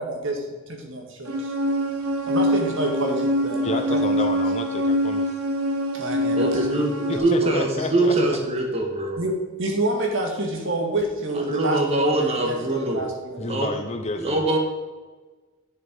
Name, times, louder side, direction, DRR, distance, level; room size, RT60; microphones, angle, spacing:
voice 1, 0.0-0.4 0.7-1.5 2.3-4.0 5.9-6.8 7.1-7.5 8.0-8.3 9.2-13.4, right 2 dB, 60° right, 2 dB, 2.0 m, -28 dB
sound 1, 1.3-7.2, equal, 85° right, 1.2 m, -24 dB
voice 2, 3.6-5.3 7.1-8.1 13.4-14.5, left 2 dB, 30° left, 6 dB, 0.8 m, -30 dB
voice 3, 6.4-9.2 11.4-13.0 13.4-13.7 14.2-14.6, right 2 dB, 30° right, 2 dB, 1.7 m, -23 dB
9.9 x 6.7 x 5.3 m, 1.3 s
head